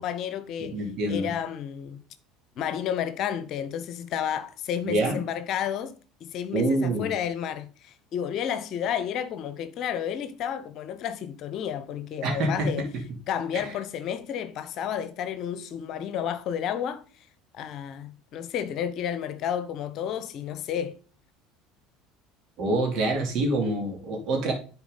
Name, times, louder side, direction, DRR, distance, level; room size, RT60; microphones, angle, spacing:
voice 1, 0.0-0.8 1.1-2.0 2.6-12.9 13.3-17.0 17.5-21.0, left 9 dB, 50° left, 0.9 m, -31 dB
voice 2, 0.6-1.3 4.8-5.2 6.5-7.1 12.2-12.7 13.5-13.6 22.6-24.5, right 2 dB, 50° right, 2.9 m, -26 dB
10.5 x 4.5 x 3.9 m
figure-of-eight pair, 65°, 0 cm